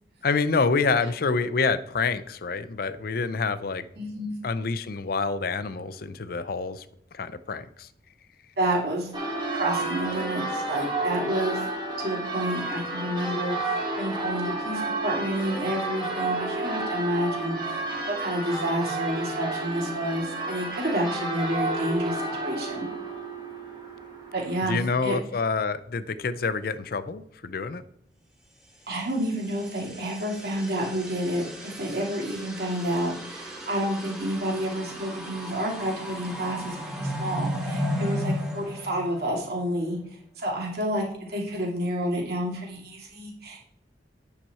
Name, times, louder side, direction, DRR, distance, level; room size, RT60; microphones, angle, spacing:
voice 1, 0.2-3.9 4.4-6.8 7.1-7.9 24.6-27.8, left 4 dB, 55° left, 14 dB, 0.5 m, -27 dB
voice 2, 3.9-4.3 8.6-9.1 9.5-11.6 12.0-22.9 24.3-25.2 28.9-36.8 37.0-40.0 40.4-43.6, equal, 60° right, -2 dB, 2.8 m, -29 dB
Church bell, 9.1-24.9, right 2 dB, 25° right, 2.0 m, -31 dB
sound 1, 29.0-39.7, equal, 5° right, 2.1 m, -35 dB
9.1 x 5.9 x 4.2 m, 0.71 s
head